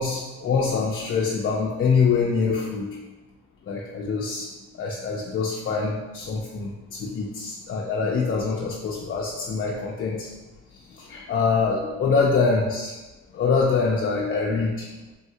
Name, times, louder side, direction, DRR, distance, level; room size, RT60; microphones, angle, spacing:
voice 1, 0.0-2.9 3.7-4.5 4.8-10.3 11.0-12.9 13.3-14.9, left 4 dB, 45° left, -3 dB, 0.4 m, -24 dB
3.4 x 2.2 x 2.7 m, 1.1 s
cardioid pair, 90°, 30 cm